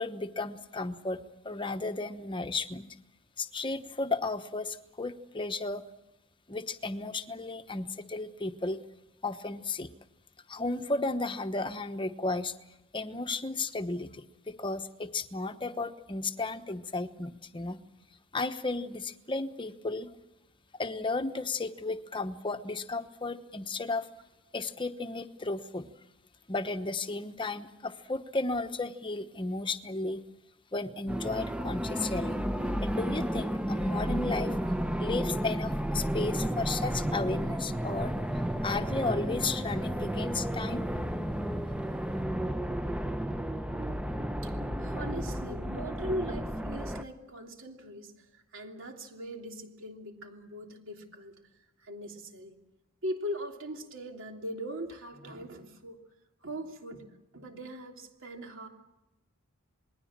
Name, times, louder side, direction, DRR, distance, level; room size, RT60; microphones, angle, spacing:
voice 1, 0.0-2.9 3.4-5.8 6.5-8.8 9.2-9.9 10.5-12.5 12.9-17.8 18.3-20.1 20.8-24.1 24.5-25.9 26.5-30.2 30.7-32.4 32.8-34.6 35.0-38.1 38.6-40.9, left 3 dB, 20° left, 9 dB, 1.0 m, -34 dB
sound 1, 31.1-47.0, equal, 5° right, 0.8 m, -32 dB
voice 2, 43.8-48.3 48.5-51.4 51.8-52.6 53.0-56.0 56.4-57.0 57.3-58.7, equal, 60° right, 3 dB, 3.1 m, -40 dB
27.5 x 20.5 x 7.4 m, 0.97 s
head